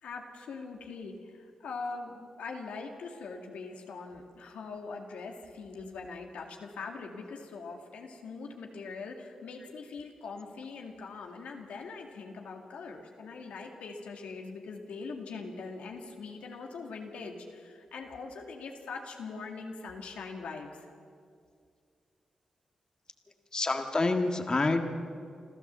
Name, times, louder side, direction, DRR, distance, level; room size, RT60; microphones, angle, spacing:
voice 1, 0.0-20.7, left 4 dB, 85° left, 2 dB, 2.1 m, -42 dB
voice 2, 23.5-24.9, left 3 dB, 40° left, 5 dB, 1.7 m, -27 dB
27.0 x 13.0 x 7.4 m, 2.2 s
cardioid pair, 50°, 2 cm